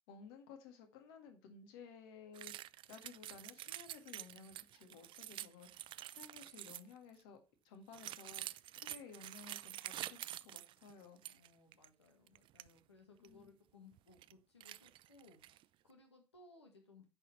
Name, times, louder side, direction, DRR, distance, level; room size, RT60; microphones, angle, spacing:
voice 1, 0.1-2.5 2.9-7.4 7.6-11.4 13.2-13.5, left 6 dB, 60° left, 6 dB, 1.7 m, -56 dB
sound 1, 2.3-7.0 7.9-11.5 11.7-11.9 12.3-12.7 13.2-13.3 13.9-14.3 14.6-15.6, right 14 dB, 40° right, 0.4 m, -48 dB
voice 2, 11.3-17.1, left 3 dB, 85° left, 3 dB, 1.6 m, -63 dB
9.8 x 4.3 x 5.5 m, 0.31 s
hypercardioid pair, 75°, 14 cm